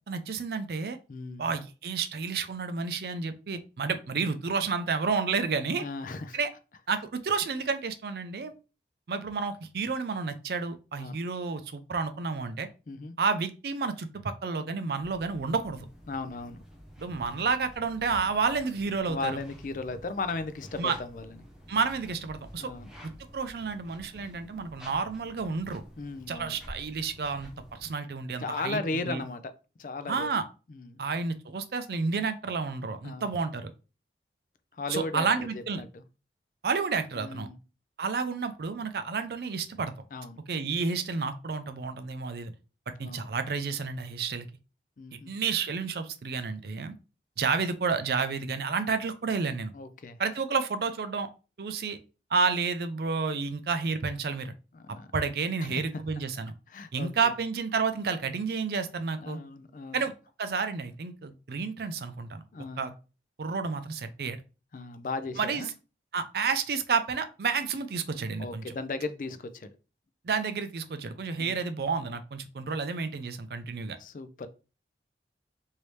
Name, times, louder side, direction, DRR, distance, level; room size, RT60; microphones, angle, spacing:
voice 1, 0.1-1.0 1.4-5.8 6.3-6.5 6.9-8.5 9.1-12.7 13.2-15.9 17.0-19.4 20.8-21.0 21.7-22.7 23.3-25.8 26.3-29.2 30.1-30.4 31.0-33.7 34.9-35.8 36.6-37.5 38.0-39.9 40.5-42.5 42.9-44.5 45.3-46.9 47.4-49.7 50.2-51.3 51.6-52.0 52.3-54.5 55.1-56.5 56.9-59.4 59.9-60.1 60.4-62.4 62.8-62.9 63.4-64.4 65.4-65.6 66.1-68.6 70.2-74.0, right 5 dB, 60° right, 9 dB, 0.4 m, -30 dB
voice 2, 1.1-1.5 5.8-6.4 11.0-11.2 12.9-13.1 16.1-16.6 19.1-21.4 22.6-22.9 26.0-26.6 28.4-29.5 29.8-30.3 30.7-31.0 33.0-33.3 34.7-36.0 37.2-37.6 40.1-40.4 43.0-43.3 45.0-45.3 49.7-50.2 54.7-55.1 55.6-55.9 56.7-57.1 59.2-60.1 62.5-62.9 64.7-65.7 68.4-69.7 71.4-71.5 74.0-74.5, left 3 dB, 50° left, 10 dB, 0.4 m, -36 dB
sound 1, 15.0-27.9, equal, 5° right, 0.6 m, -49 dB
3.2 x 2.7 x 3.1 m, 0.33 s
head